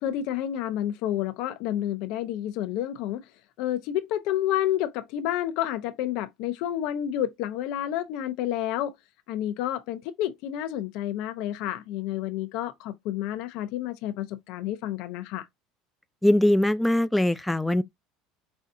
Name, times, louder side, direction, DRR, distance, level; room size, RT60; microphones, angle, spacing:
voice 1, 0.0-3.2 3.6-8.9 9.3-15.5, left 12 dB, 70° left, 0.8 m, -30 dB
voice 2, 16.2-17.8, left 1 dB, 5° left, 0.4 m, -21 dB
5.6 x 2.4 x 2.7 m
hypercardioid pair, 85°, 0 cm